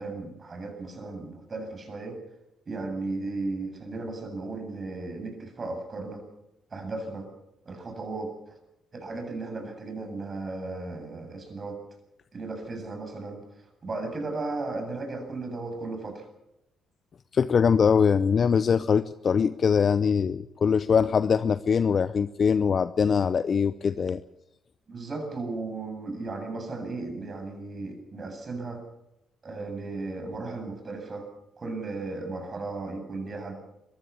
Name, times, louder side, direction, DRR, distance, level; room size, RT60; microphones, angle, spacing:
voice 1, 0.0-2.2 2.7-6.2 6.7-7.3 7.7-8.3 8.9-11.8 12.3-16.3 24.9-28.8 29.4-31.3 31.6-33.5, right 3 dB, 40° right, 5 dB, 7.8 m, -35 dB
voice 2, 17.3-24.2, left 6 dB, 50° left, 14 dB, 0.7 m, -22 dB
22.0 x 15.5 x 8.5 m, 0.86 s
hypercardioid pair, 50°, 0 cm